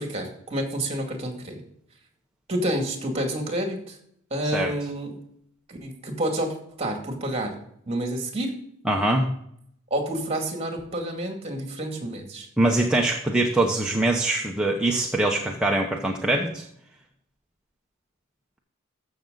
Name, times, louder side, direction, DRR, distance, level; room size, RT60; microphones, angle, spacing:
voice 1, 0.0-1.6 2.5-4.0 4.3-5.1 5.7-7.6 7.9-8.6 9.9-12.5, right 1 dB, 30° right, 3 dB, 2.3 m, -29 dB
voice 2, 8.9-9.3 12.6-16.6, right 2 dB, 5° right, -1 dB, 0.9 m, -23 dB
14.5 x 6.4 x 3.9 m, 0.69 s
head